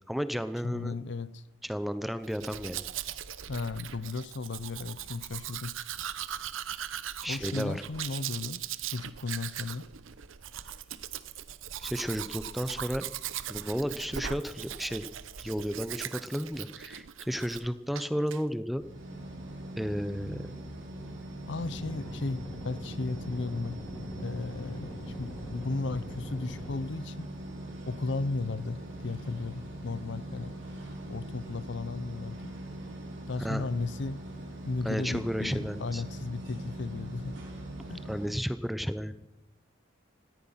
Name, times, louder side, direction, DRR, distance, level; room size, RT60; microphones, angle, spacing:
voice 1, 0.1-0.9 1.6-2.8 7.2-7.8 11.8-13.0 13.5-15.1 15.4-18.8 19.8-20.5 33.4-33.7 34.8-36.0 38.1-39.1, equal, ahead, 12 dB, 0.6 m, -33 dB
voice 2, 0.6-1.4 3.5-5.8 7.2-9.9 21.5-23.8 24.2-27.3 27.8-30.5 31.1-32.5 33.3-34.2 34.6-37.4 37.9-38.0, left 3 dB, 60° left, 17 dB, 0.7 m, -35 dB
Domestic sounds home sounds, 2.2-17.7 17.9-18.4, right 10 dB, 85° right, 0.8 m, -39 dB
sound 1, 18.7-38.3, right 1 dB, 70° right, 7.2 m, -42 dB
sound 2, 21.6-26.8, equal, 15° left, 3.6 m, -43 dB
17.5 x 14.5 x 5.7 m, 0.90 s
head